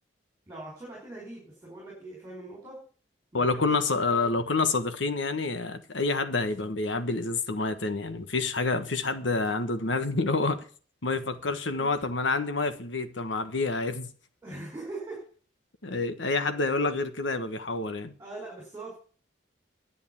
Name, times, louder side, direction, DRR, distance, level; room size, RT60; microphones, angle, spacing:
voice 1, 0.5-2.8 3.3-4.4 11.7-11.9 14.4-15.3 16.2-16.8 18.2-19.0, right 2 dB, 15° right, 5.4 m, -42 dB
voice 2, 3.3-10.6 11.0-14.1 15.8-18.1, left 3 dB, 85° left, 1.3 m, -28 dB
11.0 x 8.3 x 8.2 m
head